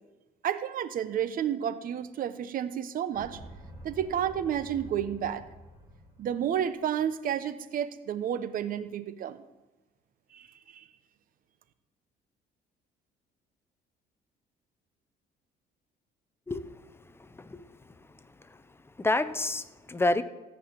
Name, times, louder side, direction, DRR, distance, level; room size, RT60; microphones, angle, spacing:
voice 1, 0.4-3.4 3.8-5.4 6.2-9.4 10.3-10.5 10.7-10.8, right 9 dB, 55° right, 12 dB, 1.0 m, -31 dB
sound 1, 3.1-6.7, equal, 15° right, 3.0 m, -48 dB
voice 2, 17.3-17.7 19.0-20.2, left 2 dB, 15° left, 13 dB, 0.7 m, -28 dB
14.5 x 5.8 x 8.9 m, 1.1 s
cardioid pair, 110°, 17 cm